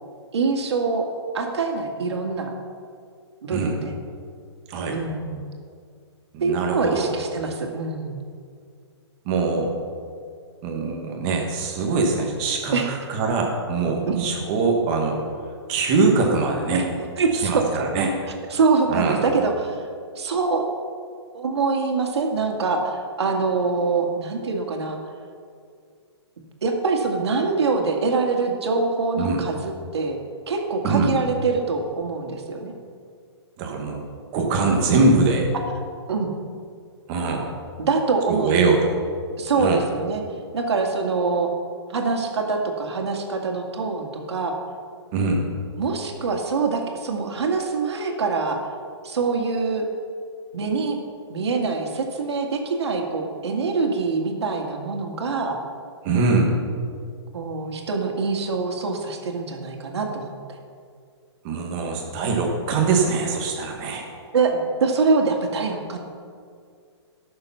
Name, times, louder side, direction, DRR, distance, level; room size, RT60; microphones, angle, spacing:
voice 1, 0.3-1.0 1.3-2.5 3.4-4.0 4.9-5.4 6.4-8.2 12.7-12.9 14.1-14.2 16.7-17.9 18.5-19.8 20.2-20.6 21.3-25.0 26.6-30.2 30.5-32.7 36.1-36.3 37.8-38.6 39.4-40.2 40.5-41.5 41.9-44.5 45.8-48.6 49.0-49.9 50.5-51.0 51.3-55.6 57.3-60.6 64.3-66.0, right 4 dB, 70° right, 2 dB, 2.2 m, -24 dB
voice 2, 6.3-7.1 9.2-9.7 10.6-15.2 15.7-16.9 17.4-18.1 18.9-19.2 29.2-29.4 30.8-31.1 33.6-34.0 34.3-35.5 37.1-37.5 38.3-38.9 39.6-39.8 45.1-45.4 56.0-56.5 61.4-64.0, right 3 dB, 20° right, 1 dB, 1.3 m, -22 dB
15.5 x 6.9 x 5.7 m, 2.2 s
hypercardioid pair, 180°, 15 cm